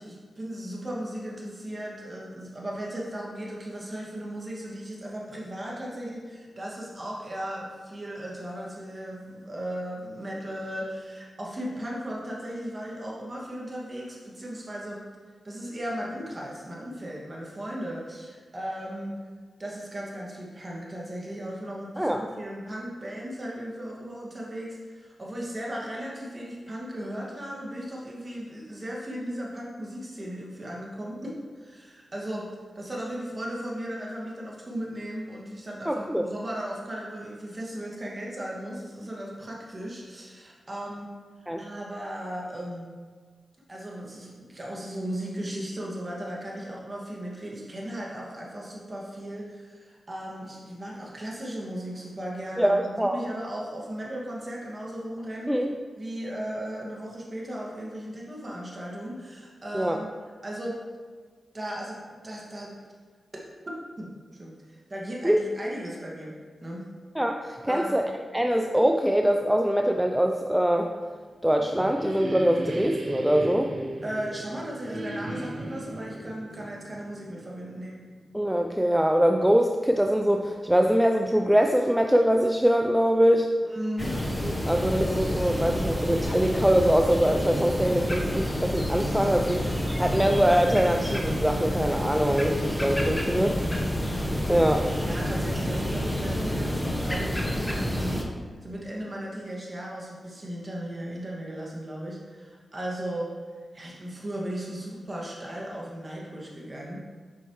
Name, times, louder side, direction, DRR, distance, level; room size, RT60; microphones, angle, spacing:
voice 1, 0.0-15.1 15.4-19.2 19.6-32.5 32.8-41.1 41.6-42.9 43.7-55.7 56.0-60.1 60.4-60.8 61.5-62.8 63.7-64.1 64.4-64.5 64.9-66.3 66.6-66.9 67.7-68.0 74.0-78.0 83.6-84.1 93.4-93.9 95.0-98.2 98.6-103.3 103.7-107.0, right 1 dB, 35° right, -3 dB, 2.0 m, -36 dB
voice 2, 22.0-22.3 35.9-36.2 41.5-41.6 52.6-53.2 55.5-55.7 59.7-60.0 65.2-65.4 67.2-68.0 68.3-70.9 71.4-73.7 78.3-83.5 84.4-93.6 94.5-94.9, equal, 10° right, 3 dB, 0.4 m, -23 dB
sound 1, 71.1-77.8, right 1 dB, 60° right, 0.8 m, -36 dB
sound 2, 84.0-98.2, equal, 10° left, 1.1 m, -29 dB
7.7 x 5.5 x 3.2 m, 1.5 s
cardioid pair, 50°, 0 cm